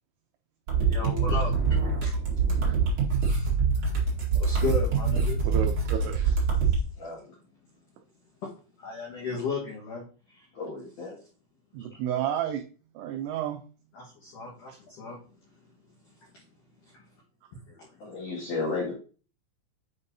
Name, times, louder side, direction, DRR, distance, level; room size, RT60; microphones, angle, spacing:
sound 1, 0.7-6.8, right 5 dB, 55° right, 1.5 m, -25 dB
voice 1, 0.8-2.1 2.5-2.6 3.1-5.5 6.6-6.8 8.4-8.5 8.8-10.4 11.8-12.0 13.9-15.2 16.2-16.4 16.8-17.0 17.7-17.9, left 5 dB, 75° left, -4 dB, 1.9 m, -36 dB
voice 2, 5.4-6.4 11.7-12.6 12.9-13.6, right 10 dB, 90° right, 4 dB, 2.5 m, -31 dB
voice 3, 7.0-7.3 10.5-11.2 18.0-18.9, left 3 dB, 55° left, -4 dB, 2.5 m, -33 dB
7.7 x 5.3 x 2.7 m, 0.38 s
omnidirectional pair, 5.9 m